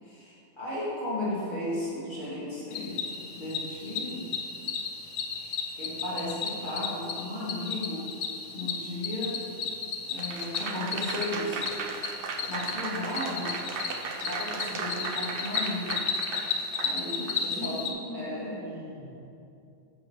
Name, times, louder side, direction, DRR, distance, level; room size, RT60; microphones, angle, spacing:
voice 1, 0.0-3.1 3.4-4.2 5.4-8.0 8.5-9.4 10.1-11.6 12.5-13.6 14.2-16.0 16.8-17.8 18.1-18.6, left 1 dB, 40° left, -8 dB, 2.2 m, -35 dB
Cricket, 2.7-17.9, left 5 dB, 90° left, 1.1 m, -34 dB
Applause / Crowd, 10.2-17.4, right 4 dB, 55° right, 0.8 m, -36 dB
voice 2, 17.3-17.7 18.1-19.1, equal, 15° left, -8 dB, 1.8 m, -41 dB
11.0 x 7.6 x 3.1 m, 2.6 s
omnidirectional pair, 1.3 m